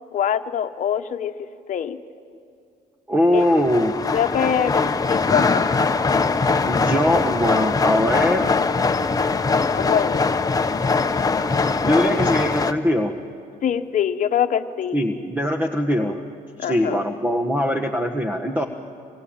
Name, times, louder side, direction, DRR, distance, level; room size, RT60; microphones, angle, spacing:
voice 1, 0.1-1.3 1.7-2.0 3.3-3.4 4.1-5.6 9.7-10.2 13.6-15.0 16.6-17.0, left 9 dB, 50° left, 7 dB, 1.2 m, -23 dB
voice 2, 3.1-3.9 6.6-8.5 11.8-13.1 14.9-16.2 16.6-18.7, left 1 dB, 10° right, 6 dB, 1.5 m, -21 dB
sound 1, 3.3-12.7, left 4 dB, 20° left, 1.1 m, -21 dB
27.5 x 22.5 x 8.9 m, 2.4 s
cardioid pair, 110°, 17 cm